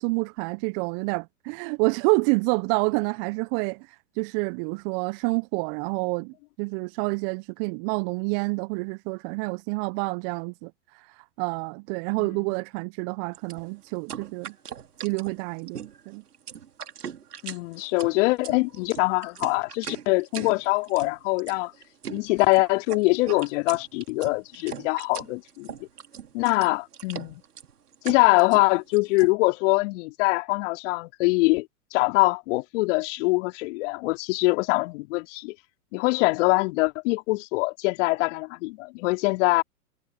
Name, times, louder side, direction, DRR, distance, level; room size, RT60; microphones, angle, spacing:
voice 1, 0.0-3.9 4.2-10.7 11.4-14.5 15.0-16.2, right 32 dB, 40° right, 0.9 m, -28 dB
sound 1, 13.3-29.3, right 8 dB, 80° right, 2.6 m, -40 dB
voice 2, 17.4-21.7 22.1-25.7 26.3-27.4 28.0-31.7 31.9-35.5 35.9-39.6, left 24 dB, 50° left, 4.1 m, -23 dB
hypercardioid pair, 100°, 46 cm